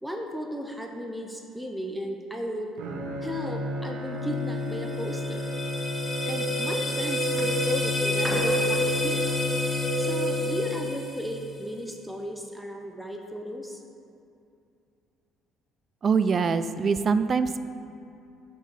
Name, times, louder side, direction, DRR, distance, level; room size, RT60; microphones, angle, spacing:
voice 1, 0.0-2.7 3.2-5.5 6.2-9.2 10.0-13.8, equal, 5° right, 2 dB, 0.7 m, -35 dB
Bowed string instrument, 2.8-11.1, left 3 dB, 80° right, 1.0 m, -32 dB
sound 1, 4.6-11.7, equal, 15° left, 1.0 m, -29 dB
sound 2, 7.4-10.6 11.4-11.5, right 1 dB, 25° right, 1.3 m, -40 dB
voice 2, 16.0-17.6, right 5 dB, 45° right, 12 dB, 0.3 m, -23 dB
5.6 x 4.6 x 6.0 m, 2.6 s
supercardioid pair, 75°, 0 cm